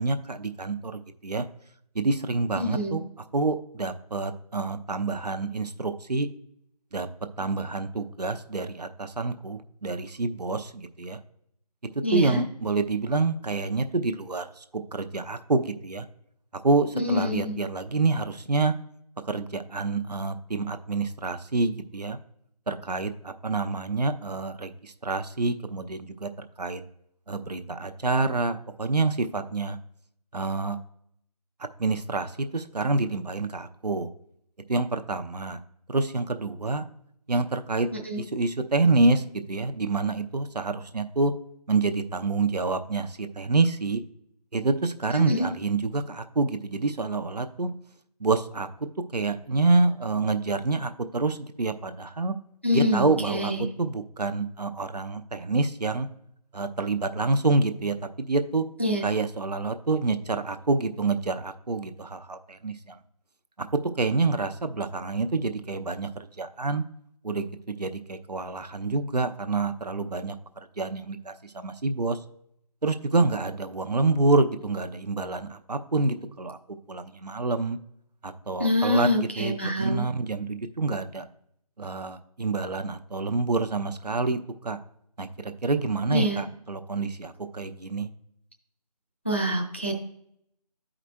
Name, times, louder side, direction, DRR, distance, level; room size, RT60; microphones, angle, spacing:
voice 1, 0.0-1.4 1.9-3.0 3.3-6.3 6.9-7.1 7.4-11.2 12.1-14.6 14.9-16.1 16.6-18.7 19.3-22.2 22.7-26.3 26.6-26.8 27.3-29.8 30.3-30.8 31.6-34.1 34.7-35.6 35.9-36.8 37.3-37.9 38.2-41.3 41.7-44.0 44.5-47.7 48.2-48.7 49.1-52.3 52.7-56.1 56.5-58.6 59.0-63.0 63.6-63.7 64.0-66.8 67.2-70.3 70.8-72.2 72.8-76.6 76.9-77.8 78.2-79.1 79.4-81.3 81.8-84.8 85.2-88.1, right 3 dB, 80° right, 8 dB, 0.7 m, -27 dB
voice 2, 2.5-3.0 12.0-12.4 16.9-17.6 38.1-38.2 45.1-45.5 52.6-53.6 58.8-59.1 78.6-80.0 86.1-86.4 89.2-89.9, left 1 dB, 20° left, 0 dB, 0.4 m, -26 dB
12.5 x 4.9 x 2.2 m, 0.73 s
figure-of-eight pair, 160°, 20 cm